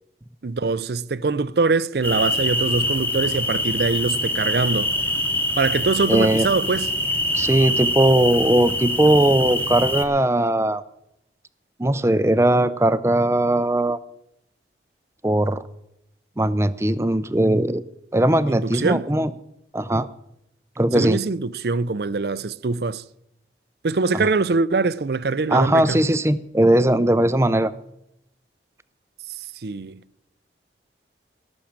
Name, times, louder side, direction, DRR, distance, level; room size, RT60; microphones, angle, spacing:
voice 1, 0.4-4.9 5.6-6.9 18.5-19.0 20.9-23.0 23.8-26.0 29.6-30.0, right 4 dB, 65° right, 0.5 m, -23 dB
sound 1, 2.0-10.0, left 1 dB, 10° left, 1.3 m, -24 dB
voice 2, 6.1-6.5 7.3-10.8 11.8-14.0 15.2-15.6 16.4-17.8 18.1-19.3 19.7-20.1 20.8-21.2 24.1-24.2 25.5-27.7, right 1 dB, 15° right, 0.6 m, -19 dB
18.0 x 6.4 x 8.8 m
head